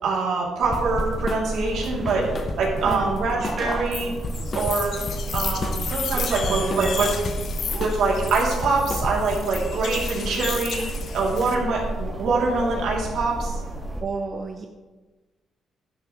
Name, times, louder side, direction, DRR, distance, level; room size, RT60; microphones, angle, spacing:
voice 1, 0.0-2.2 2.6-4.1 4.5-5.0 5.3-7.1 7.7-10.9 11.1-13.5, right 3 dB, 75° right, -3 dB, 3.0 m, -24 dB
sound 1, 0.6-14.0, right 1 dB, 10° right, 2.0 m, -31 dB
sound 2, 0.7-1.5 1.8-3.2 3.4-3.7 4.0-5.9 6.2-7.5 7.8-8.1 8.4-9.4, left 3 dB, 40° left, 1.0 m, -33 dB
voice 2, 2.8-3.2 6.1-7.0 14.0-14.7, right 4 dB, 40° right, 4 dB, 0.8 m, -31 dB
sound 3, 3.9-11.5, left 6 dB, 60° left, 1.1 m, -33 dB
11.0 x 10.5 x 3.2 m, 1.2 s
cardioid pair, 90°, 0 cm